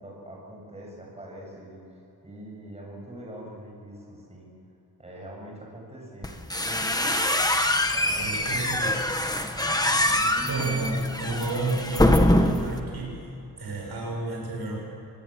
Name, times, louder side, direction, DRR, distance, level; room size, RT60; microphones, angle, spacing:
voice 1, 0.0-4.5 5.0-6.4 7.9-8.9 10.0-11.0, right 1 dB, 15° right, -2 dB, 7.7 m, -43 dB
sound 1, 6.2-12.8, left 1 dB, 10° left, 1.5 m, -24 dB
voice 2, 8.2-9.1 10.5-13.3 13.6-14.8, right 2 dB, 75° right, -1 dB, 7.1 m, -31 dB
26.5 x 20.0 x 7.6 m, 2.9 s
wide cardioid pair, 155°, 38 cm